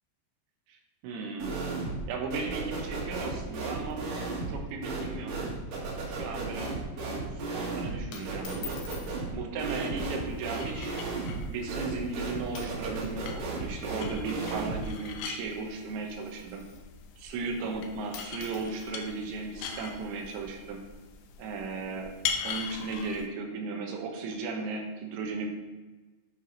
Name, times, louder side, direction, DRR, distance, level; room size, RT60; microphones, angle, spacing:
voice 1, 1.0-1.5 2.1-4.0 4.5-5.3 6.1-6.7 7.3-8.8 9.3-11.0 11.5-16.7 17.2-20.8 21.4-22.1 22.4-25.5, right 4 dB, 85° right, 2 dB, 3.3 m, -36 dB
sound 1, 1.4-2.1 2.3-14.9, right 3 dB, 55° right, 2.2 m, -35 dB
sound 2, 3.4-4.4 4.7-4.8 5.1-5.3 5.7-6.0 6.3-6.6 7.4-7.6 8.1-9.2 10.2-10.4 11.1-11.2 11.9-12.1 12.5-13.2 13.4-17.0 17.8-17.9 18.1-20.4, left 7 dB, 70° left, 2.5 m, -49 dB
sound 3, 10.3-23.3, left 7 dB, 90° left, 3.0 m, -41 dB
11.0 x 4.8 x 3.9 m, 1.2 s
omnidirectional pair, 5.1 m